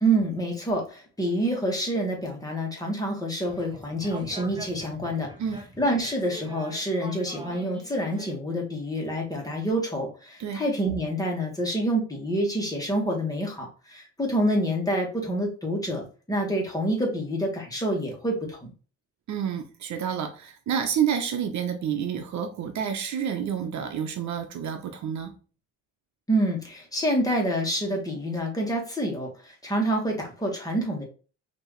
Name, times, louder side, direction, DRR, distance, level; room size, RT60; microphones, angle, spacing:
voice 1, 0.0-5.3 5.8-18.6 26.3-31.0, right 1 dB, 10° left, 1.8 m, -27 dB
sound 1, 3.4-8.3, right 2 dB, 15° right, 0.9 m, -44 dB
voice 2, 19.3-25.3, right 8 dB, 70° right, 0.8 m, -29 dB
4.5 x 3.0 x 3.2 m
cardioid pair, 90°, 30 cm